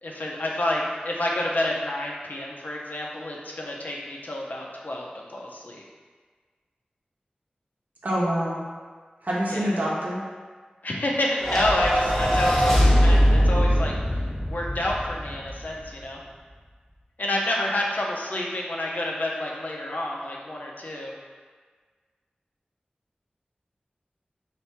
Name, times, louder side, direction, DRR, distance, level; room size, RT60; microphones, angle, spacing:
voice 1, 0.0-5.8 9.5-9.7 10.8-13.9 14.5-16.2 17.2-21.1, left 1 dB, 70° left, -2 dB, 0.7 m, -29 dB
voice 2, 8.0-8.6 9.2-10.2, equal, 65° right, -6 dB, 1.0 m, -26 dB
sound 1, 11.4-15.8, equal, 10° left, 1.1 m, -21 dB
3.4 x 2.6 x 4.2 m, 1.5 s
wide cardioid pair, 50°, 3 cm